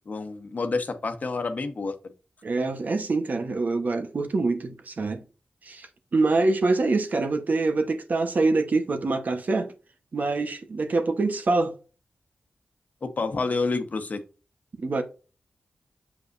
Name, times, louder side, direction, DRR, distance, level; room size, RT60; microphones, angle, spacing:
voice 1, 0.1-1.9 13.0-14.2, left 3 dB, 55° left, 1.1 m, -28 dB
voice 2, 2.4-5.2 5.6-5.9 6.1-9.7 10.1-11.7 14.8-15.0, right 3 dB, 60° right, 1.2 m, -25 dB
7.2 x 5.1 x 2.6 m
cardioid pair, 60°, 3 cm